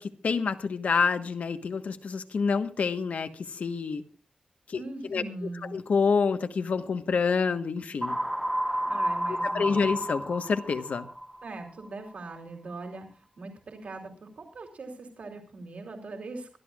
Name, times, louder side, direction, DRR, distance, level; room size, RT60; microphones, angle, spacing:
voice 1, 0.0-4.1 4.7-5.2 5.6-8.2 9.3-11.1, left 5 dB, 70° left, 9 dB, 1.2 m, -28 dB
voice 2, 4.8-5.7 8.9-10.0 11.4-13.1 13.4-16.5, right 3 dB, 60° right, 3 dB, 3.0 m, -40 dB
sound 1, 8.0-11.9, equal, 5° right, 0.6 m, -31 dB
24.0 x 13.0 x 2.4 m, 0.36 s
wide cardioid pair, 175°, 3 cm